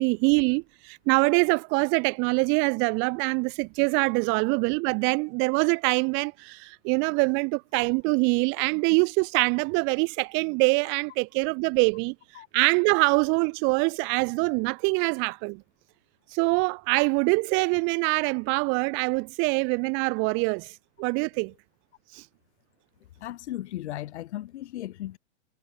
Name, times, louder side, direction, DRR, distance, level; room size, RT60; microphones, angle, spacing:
voice 1, 0.0-12.1 12.5-15.6 16.3-21.5 22.1-22.2, right 33 dB, 30° right, 0.7 m, -24 dB
voice 2, 23.2-25.2, left 14 dB, 65° left, 0.9 m, -36 dB
hypercardioid pair, 125°, 37 cm